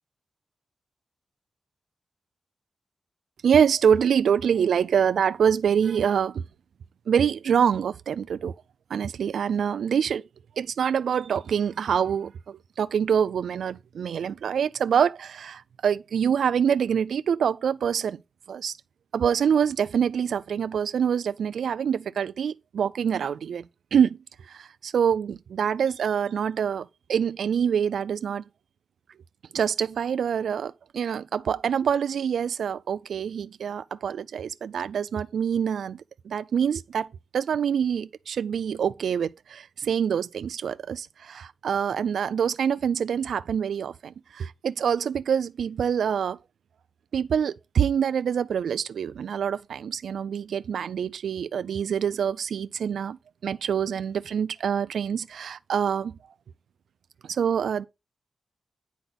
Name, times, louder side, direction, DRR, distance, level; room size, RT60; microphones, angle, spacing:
voice 1, 3.4-6.4 7.1-8.5 8.9-10.2 10.6-18.2 18.5-18.8 19.1-23.7 23.9-28.4 29.5-37.1 37.3-46.4 47.1-53.2 53.4-56.2 57.2-57.8, right 7 dB, 80° right, 0.3 m, -25 dB
9.2 x 4.3 x 4.0 m
wide cardioid pair, 150°, 0 cm